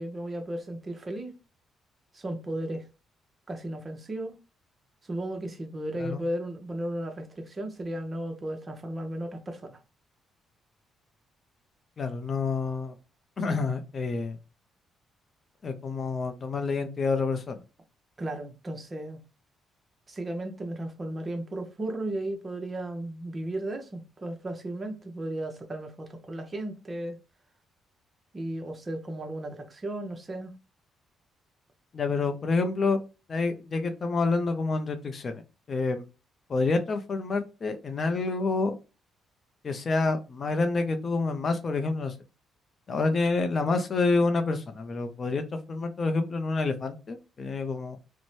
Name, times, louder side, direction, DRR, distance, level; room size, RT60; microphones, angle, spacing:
voice 1, 0.0-1.4 2.1-2.9 3.5-4.4 5.0-9.8 18.2-19.2 20.1-27.2 28.3-30.5, right 1 dB, 30° right, 0.7 m, -35 dB
voice 2, 12.0-12.9 13.4-14.4 15.6-17.6 31.9-33.0 33.3-35.4 35.7-36.0 36.5-38.7 39.6-42.1 42.9-48.0, left 3 dB, 45° left, 0.5 m, -28 dB
2.6 x 2.1 x 3.0 m
cardioid pair, 90°, 0 cm